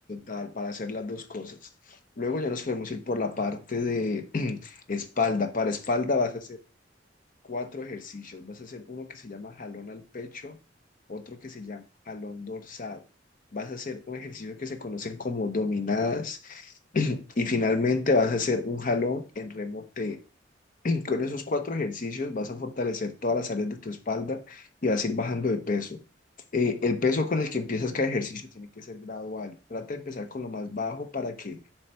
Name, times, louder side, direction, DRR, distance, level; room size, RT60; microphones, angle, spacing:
voice 1, 0.1-1.6 1.9-6.6 7.5-10.6 11.1-13.0 13.5-20.2 20.8-26.0 26.5-31.6, left 3 dB, 45° left, 0.7 m, -30 dB
7.0 x 3.4 x 5.6 m
head